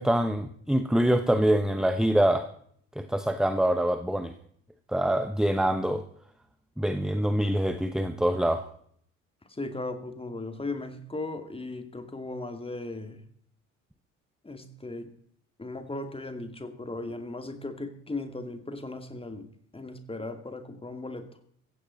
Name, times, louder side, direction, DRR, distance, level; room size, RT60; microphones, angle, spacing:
voice 1, 0.0-2.5 3.0-4.3 4.9-6.0 6.8-8.7, right 1 dB, ahead, 10 dB, 1.0 m, -25 dB
voice 2, 9.6-13.2 14.4-15.1 15.6-19.5 19.7-21.3, left 2 dB, 15° left, 6 dB, 2.4 m, -37 dB
16.5 x 15.5 x 4.1 m, 0.64 s
figure-of-eight pair, 55°, 39 cm